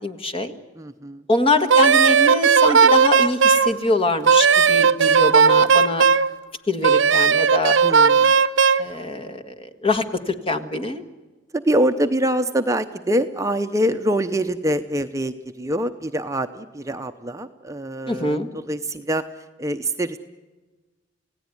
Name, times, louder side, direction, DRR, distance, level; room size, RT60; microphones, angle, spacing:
voice 1, 0.0-0.5 1.3-6.1 6.7-7.8 8.8-11.0 18.1-18.5, left 2 dB, 30° left, 8 dB, 1.7 m, -24 dB
voice 2, 0.8-1.2 7.8-8.4 11.5-20.2, right 1 dB, 15° right, 8 dB, 0.8 m, -24 dB
Wind instrument woodwind instrument, 1.7-3.7 4.3-6.3 6.8-8.9, right 6 dB, 75° right, 0.8 m, -15 dB
28.5 x 17.5 x 9.7 m, 1.3 s
head